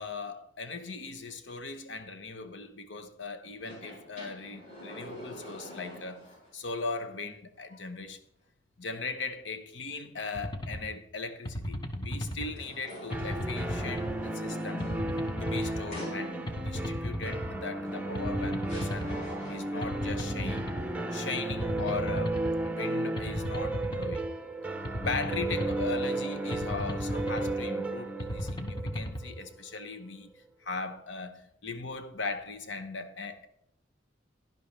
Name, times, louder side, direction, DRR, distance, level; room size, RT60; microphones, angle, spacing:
voice 1, 0.0-8.2 8.8-15.0 15.4-19.2 19.5-20.6 21.1-22.4 22.6-24.3 25.0-30.3 30.6-33.5, left 4 dB, 65° left, 0.9 m, -39 dB
sound 1, 3.6-6.5 6.9-7.0 12.4-16.7 17.9-18.0 18.7-19.8, equal, 40° left, 5.1 m, -46 dB
sound 2, 10.4-10.8 11.5-12.5 13.1-14.2 14.8-15.8 16.5-17.5 18.2-19.2 19.8-20.9 21.5-22.5 23.2-24.2 24.8-25.9 26.5-27.6 28.2-29.2, equal, 25° left, 0.8 m, -35 dB
sound 3, 13.1-29.8, right 2 dB, 5° right, 0.8 m, -34 dB
11.0 x 11.0 x 3.3 m
head